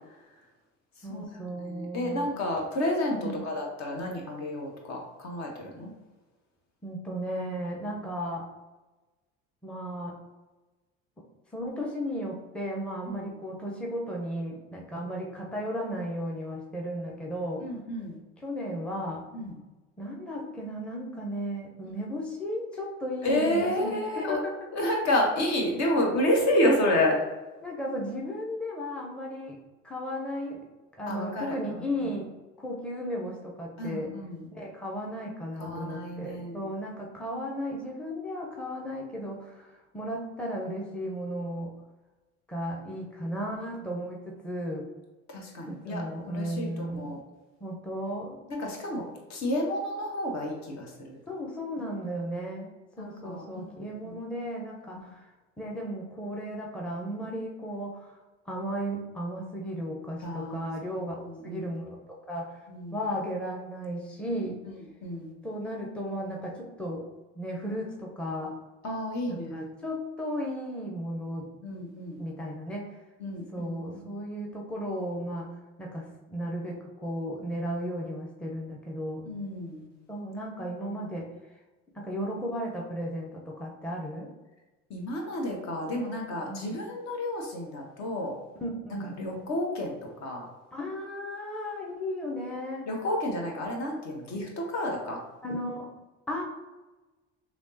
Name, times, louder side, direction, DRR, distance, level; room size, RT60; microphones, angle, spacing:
voice 1, 1.0-2.4 3.1-3.4 6.8-8.5 9.6-10.1 11.5-17.7 18.4-19.2 20.0-24.6 27.6-29.6 29.8-30.6 31.0-32.3 32.6-34.1 34.5-41.7 42.5-44.8 45.7-47.2 47.6-48.4 51.3-55.3 55.6-58.2 58.5-61.1 61.4-62.6 62.9-64.6 65.4-67.0 67.3-68.5 69.3-71.5 72.2-73.0 73.5-75.5 75.8-79.3 80.1-81.3 81.9-84.3 86.4-86.8 88.6-89.2 90.7-92.9 95.4-95.9 96.3-96.4, equal, 5° left, -2 dB, 0.6 m, -35 dB
voice 2, 1.6-5.9 13.1-13.2 17.6-18.2 19.3-19.5 21.8-21.9 23.2-24.4 24.7-27.2 31.1-32.1 33.8-34.5 35.6-36.7 45.3-47.2 48.6-49.0 49.3-51.2 53.0-54.2 54.9-55.1 60.2-60.7 61.3-61.7 62.7-63.0 65.0-65.3 68.8-69.7 71.6-72.2 73.2-74.1 79.3-79.9 84.9-88.4 89.2-90.5 92.9-95.2, left 1 dB, 50° left, 0 dB, 1.0 m, -30 dB
3.4 x 2.9 x 2.7 m, 1.2 s
hypercardioid pair, 70°, 35 cm